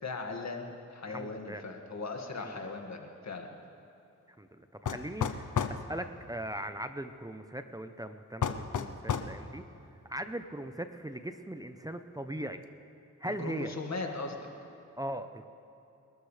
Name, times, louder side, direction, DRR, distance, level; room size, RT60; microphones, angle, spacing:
voice 1, 0.0-3.5 13.4-14.5, left 3 dB, 60° left, 2 dB, 2.0 m, -38 dB
voice 2, 1.1-1.6 2.4-2.7 4.4-9.6 10.1-12.6 13.2-13.7 15.0-15.5, right 1 dB, 10° right, 8 dB, 0.8 m, -39 dB
sound 1, 4.9-5.8 8.4-9.3, left 7 dB, 75° left, 0.8 m, -31 dB
27.5 x 13.0 x 3.4 m, 2.9 s
cardioid pair, 50°, 31 cm